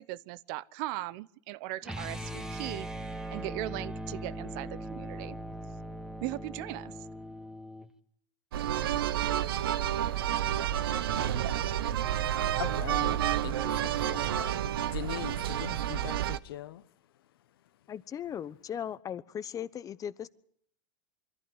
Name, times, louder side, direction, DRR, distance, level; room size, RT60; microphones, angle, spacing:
voice 1, 0.0-2.9 3.3-5.4 6.2-6.9, right 17 dB, 60° right, 0.8 m, -38 dB
sound 1, 1.8-7.9, right 1 dB, 5° right, 1.9 m, -40 dB
sound 2, 8.5-16.4, right 11 dB, 90° right, 0.9 m, -30 dB
voice 2, 12.6-14.6 14.9-16.8, left 13 dB, 85° left, 1.1 m, -41 dB
voice 3, 17.9-20.3, left 9 dB, 30° left, 1.0 m, -38 dB
24.5 x 15.0 x 8.0 m
supercardioid pair, 115°, 12 cm